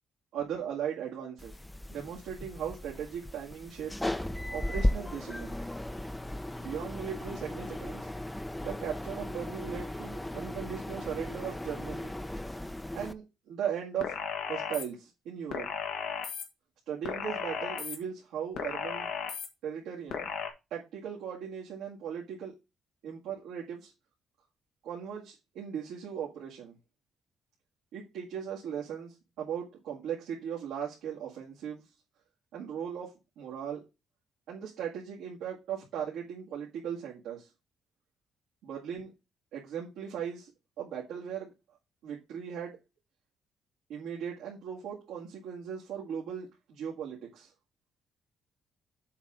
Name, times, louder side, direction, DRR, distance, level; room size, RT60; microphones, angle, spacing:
voice 1, 0.3-1.5 1.9-4.1 4.5-5.5 6.6-8.1 8.6-12.2 12.9-14.1 14.5-15.7 16.9-19.1 19.6-20.3 20.7-22.5 23.0-23.9 24.8-26.7 27.9-31.9 32.5-33.8 34.5-37.5 38.6-39.1 39.5-40.5 40.8-41.5 42.0-42.8 43.9-47.5, right 8 dB, 85° right, 2.1 m, -38 dB
sound 1, 1.4-13.1, left 1 dB, 10° left, 0.7 m, -36 dB
sound 2, 14.0-14.8 15.5-16.4 17.0-18.0 18.6-19.5 20.1-20.5, left 7 dB, 80° left, 1.7 m, -35 dB
7.3 x 3.6 x 6.4 m
cardioid pair, 90°, 0 cm